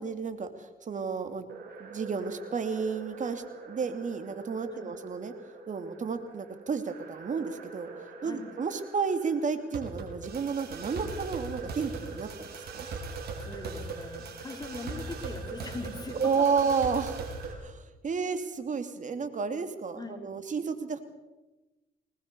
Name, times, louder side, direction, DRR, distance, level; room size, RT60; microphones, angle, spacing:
voice 1, 0.0-1.5 1.8-5.3 5.7-7.9 8.2-12.9 16.2-21.0, right 5 dB, 50° right, 8 dB, 2.7 m, -32 dB
sound 1, 1.5-17.5, right 4 dB, 70° right, 4.8 m, -41 dB
voice 2, 13.4-16.3 19.9-20.4, left 3 dB, 25° left, 3 dB, 4.4 m, -41 dB
21.0 x 19.5 x 6.9 m, 1.1 s
supercardioid pair, 70°, 17 cm